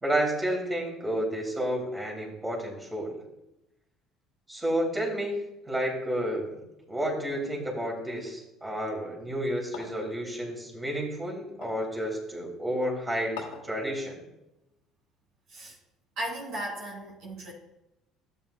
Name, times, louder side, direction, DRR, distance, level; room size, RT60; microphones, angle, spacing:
voice 1, 0.0-3.1 4.5-5.4 5.7-6.6 6.9-13.3 13.6-14.2, right 1 dB, 15° right, -2 dB, 3.1 m, -31 dB
sound 1, 9.7-10.2 11.6-11.9 13.4-13.8, left 7 dB, 85° left, 1.4 m, -41 dB
voice 2, 16.2-17.5, right 1 dB, 65° right, -3 dB, 3.1 m, -36 dB
12.5 x 8.2 x 2.3 m, 0.92 s
hypercardioid pair, 70°, 0 cm